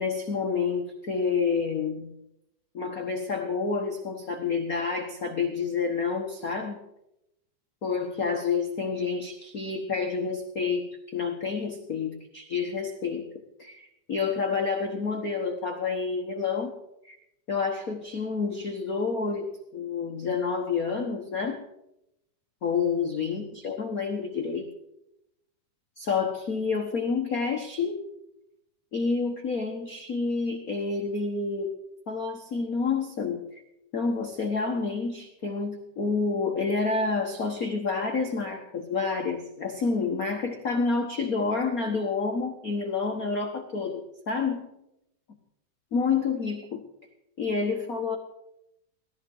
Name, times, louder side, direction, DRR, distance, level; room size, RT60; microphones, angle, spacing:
voice 1, 0.0-2.1 2.7-6.8 7.8-13.3 13.6-16.8 17.0-17.2 17.5-19.4 19.7-21.6 22.6-24.7 26.0-28.0 28.9-31.7 32.1-33.6 33.9-44.7 45.9-46.8 47.4-48.2, left 4 dB, 75° left, 2 dB, 0.8 m, -29 dB
18.5 x 14.0 x 3.9 m, 0.85 s
omnidirectional pair, 3.6 m